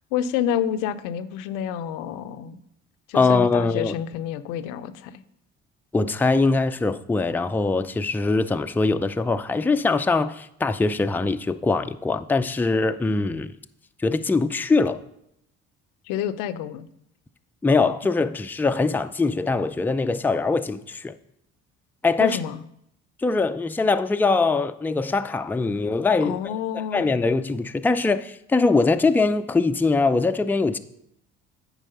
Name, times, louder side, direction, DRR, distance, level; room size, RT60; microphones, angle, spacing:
voice 1, 0.1-2.6 3.1-5.1 16.0-16.9 22.2-22.6 26.2-27.0, left 9 dB, 85° left, 11 dB, 0.6 m, -28 dB
voice 2, 3.1-3.9 5.9-13.5 14.0-15.0 17.6-21.1 22.0-22.4 23.2-26.5 26.9-30.8, left 3 dB, 5° left, 8 dB, 0.4 m, -22 dB
8.9 x 4.7 x 5.5 m, 0.78 s
supercardioid pair, 70°, 32 cm